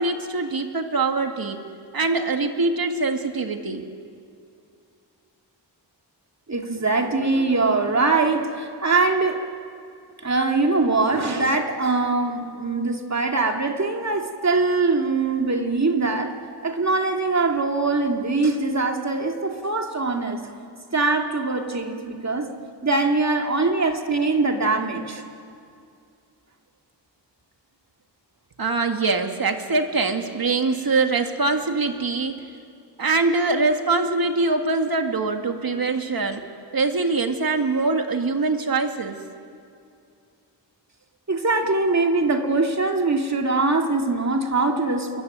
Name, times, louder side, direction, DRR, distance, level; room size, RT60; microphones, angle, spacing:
voice 1, 0.0-1.6 1.9-3.9 28.6-32.4 33.0-36.4 36.7-39.2, right 3 dB, 55° right, 5 dB, 2.2 m, -23 dB
voice 2, 6.5-9.4 10.2-16.4 16.6-20.5 20.9-22.5 22.8-25.2 41.3-45.2, right 3 dB, 40° right, 3 dB, 2.4 m, -22 dB
28.0 x 22.0 x 9.4 m, 2.4 s
wide cardioid pair, 105°, 42 cm